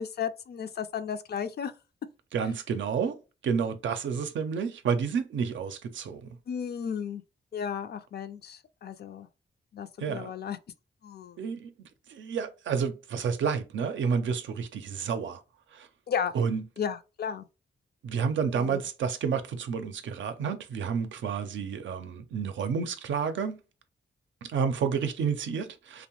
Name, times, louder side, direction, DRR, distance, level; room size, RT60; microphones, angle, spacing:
voice 1, 0.0-1.7 6.5-7.2 7.5-9.3 9.7-10.6 11.0-11.4 16.1-16.3 16.8-17.4 18.5-18.8, left 7 dB, 60° left, 0.4 m, -34 dB
voice 2, 2.3-3.2 3.4-6.3 10.0-10.3 11.4-15.4 15.7-15.9 16.3-16.6 18.0-23.6 24.4-26.1, right 6 dB, 90° right, 0.4 m, -30 dB
2.7 x 2.0 x 2.8 m
cardioid pair, 80°, 19 cm